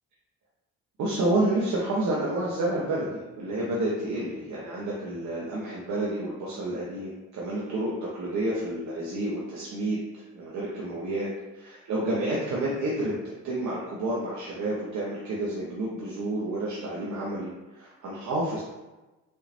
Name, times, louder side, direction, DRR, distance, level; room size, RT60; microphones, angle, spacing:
voice 1, 1.0-11.3 11.5-18.6, right 1 dB, 70° right, -5 dB, 1.0 m, -30 dB
5.6 x 3.3 x 2.7 m, 1.1 s
cardioid pair, 90°, 30 cm